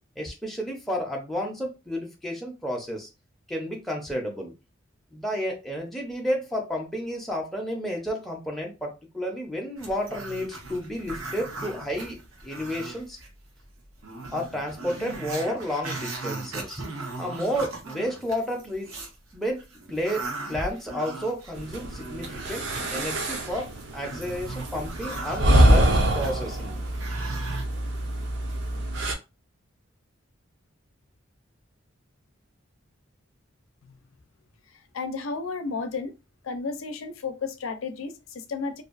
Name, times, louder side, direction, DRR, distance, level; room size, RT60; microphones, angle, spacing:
voice 1, 0.2-3.1 3.5-4.5 5.1-13.2 14.3-16.9 17.2-18.9 19.3-26.9, equal, ahead, 0.5 m, -31 dB
Growling, 9.8-13.3 13.6-13.7 14.0-19.2 19.6-27.6, right 3 dB, 90° right, 0.9 m, -38 dB
sound 1, 21.5-29.1, right 1 dB, 60° right, 0.5 m, -25 dB
voice 2, 34.9-36.1 36.4-38.8, left 4 dB, 85° left, 0.5 m, -32 dB
2.6 x 2.2 x 2.4 m
head